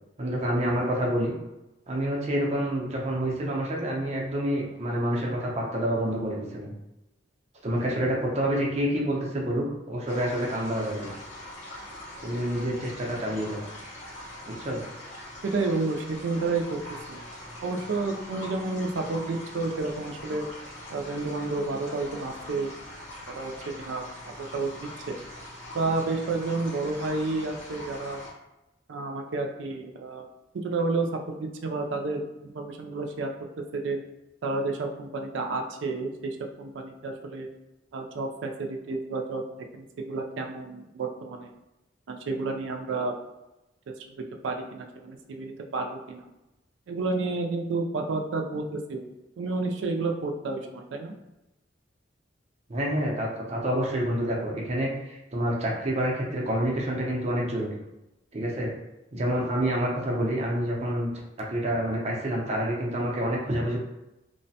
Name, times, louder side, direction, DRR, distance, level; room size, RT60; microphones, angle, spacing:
voice 1, 0.2-1.3 1.9-6.7 7.6-11.1 12.2-13.6 14.5-14.8 52.7-57.8 58.3-58.7 59.1-61.1 61.4-63.8, equal, 35° right, -2 dB, 0.6 m, -28 dB
sound 1, 10.1-28.3, left 1 dB, 40° left, 1.0 m, -42 dB
voice 2, 15.4-16.8 17.1-17.2 17.6-20.5 20.9-22.7 23.4-25.2 25.7-28.2 28.9-30.3 30.5-33.3 33.7-34.0 34.4-37.5 37.9-39.4 39.7-41.5 42.1-43.1 44.2-46.3 46.9-51.2, right 3 dB, 85° right, 3 dB, 0.4 m, -30 dB
3.0 x 2.1 x 2.7 m, 0.96 s
head